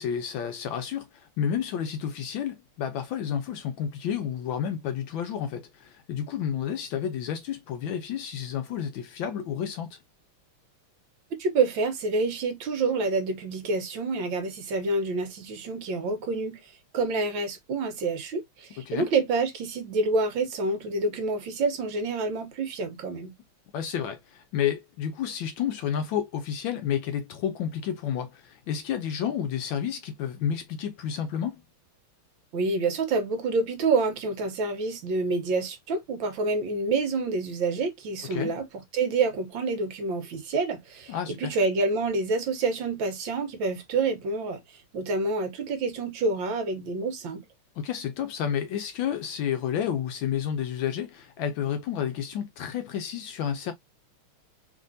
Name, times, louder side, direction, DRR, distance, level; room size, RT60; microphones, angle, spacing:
voice 1, 0.0-10.0 18.8-19.1 23.7-31.6 38.3-38.5 41.1-41.6 47.8-53.7, left 8 dB, 75° left, 1.2 m, -30 dB
voice 2, 11.4-16.6 16.9-23.3 32.5-38.6 38.9-44.6 44.9-47.4, right 3 dB, 65° right, 1.5 m, -27 dB
3.5 x 3.3 x 2.5 m
omnidirectional pair, 2.4 m